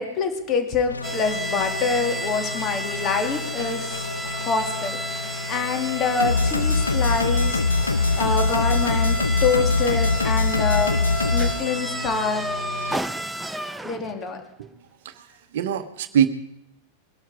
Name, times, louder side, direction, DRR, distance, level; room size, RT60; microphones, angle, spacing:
voice 1, 0.0-7.6 8.2-11.0 11.3-12.5 13.8-14.4, left 5 dB, 30° left, 5 dB, 2.6 m, -26 dB
sound 1, 0.9-13.0, left 3 dB, 80° left, 0.5 m, -25 dB
sound 2, 1.0-14.3, right 1 dB, 5° right, 0.7 m, -32 dB
voice 2, 15.5-16.3, right 9 dB, 55° right, 9 dB, 1.1 m, -23 dB
22.0 x 12.0 x 4.9 m, 0.84 s
figure-of-eight pair, 90°, 0 cm